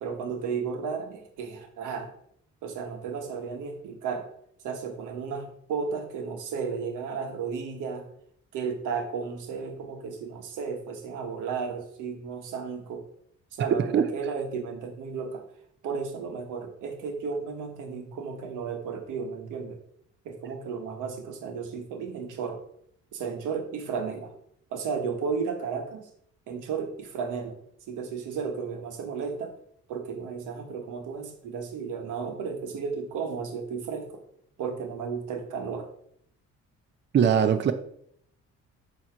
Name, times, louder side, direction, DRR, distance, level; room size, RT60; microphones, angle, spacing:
voice 1, 0.0-2.1 2.6-4.3 4.6-8.1 8.5-13.1 13.5-15.4 15.8-19.8 20.2-22.6 23.1-24.3 24.7-26.1 26.5-27.5 27.9-29.5 29.9-34.2 34.6-35.9, right 5 dB, 90° right, 5 dB, 1.1 m, -33 dB
voice 2, 37.1-37.7, right 8 dB, 40° right, 9 dB, 0.5 m, -20 dB
7.1 x 2.9 x 4.9 m, 0.68 s
cardioid pair, 90°, 30 cm